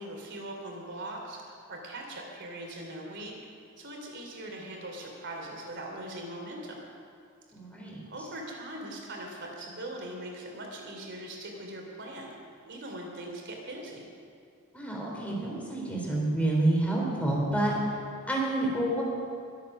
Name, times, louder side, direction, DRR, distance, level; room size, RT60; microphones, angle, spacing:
voice 1, 0.0-3.4 3.8-6.8 8.1-12.3 12.6-14.1, right 1 dB, 55° right, 0 dB, 3.2 m, -41 dB
voice 2, 7.5-8.0 14.7-17.7 18.3-19.0, right 1 dB, 5° left, -3 dB, 3.6 m, -28 dB
22.5 x 8.5 x 6.1 m, 2.3 s
head